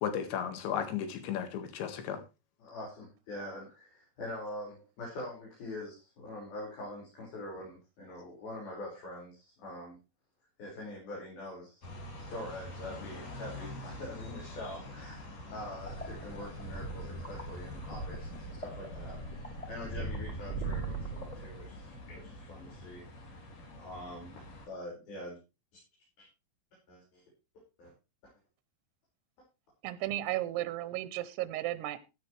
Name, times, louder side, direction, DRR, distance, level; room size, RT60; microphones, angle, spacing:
voice 1, 0.0-2.2, left 8 dB, 85° left, 8 dB, 4.1 m, -34 dB
voice 2, 2.6-10.0 10.6-11.9 12.2-23.1 23.7-25.4 26.2-26.3 26.9-27.2 27.8-27.9, left 1 dB, 55° left, -4 dB, 7.1 m, -44 dB
sound 1, 11.8-24.7, left 1 dB, 40° left, 4.0 m, -46 dB
sound 2, 15.8-21.9, right 3 dB, 20° left, 1.0 m, -41 dB
voice 3, 29.8-32.0, right 15 dB, 75° right, 13 dB, 2.7 m, -34 dB
16.0 x 10.5 x 3.2 m, 0.28 s
omnidirectional pair, 5.0 m